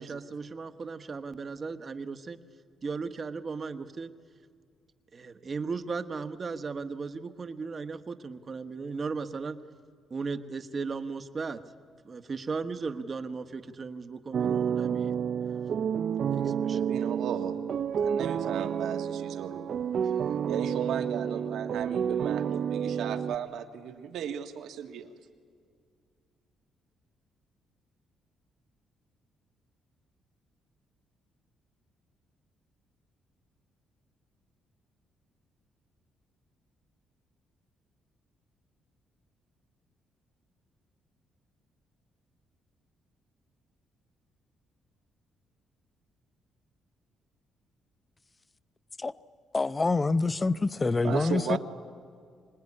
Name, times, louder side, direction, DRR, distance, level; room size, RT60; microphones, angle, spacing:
voice 1, 0.0-2.4 2.8-4.1 5.1-9.6 10.1-11.6 12.0-15.2 16.3-16.9, right 4 dB, 40° right, 1.3 m, -36 dB
sound 1, 14.3-23.3, right 8 dB, 60° right, 0.6 m, -30 dB
voice 2, 16.7-17.6 17.9-19.7 20.0-20.1 20.5-25.1 51.0-51.6, right 8 dB, 80° right, 1.8 m, -36 dB
voice 3, 49.5-51.6, left 3 dB, 25° left, 0.7 m, -26 dB
25.0 x 19.5 x 9.8 m
cardioid pair, 90°, 0 cm